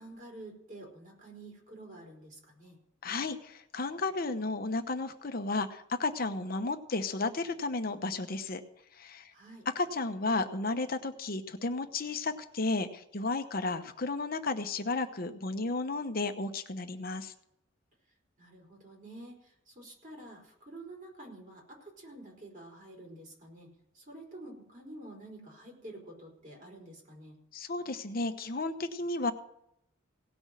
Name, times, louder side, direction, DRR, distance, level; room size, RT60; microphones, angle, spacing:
voice 1, 0.0-2.8 9.3-9.7 18.4-27.4, right 1 dB, 40° right, -1 dB, 4.7 m, -49 dB
voice 2, 3.0-8.6 9.0-9.3 9.7-17.3 27.5-29.3, left 3 dB, 50° left, 8 dB, 0.9 m, -33 dB
17.5 x 6.2 x 7.5 m, 0.77 s
head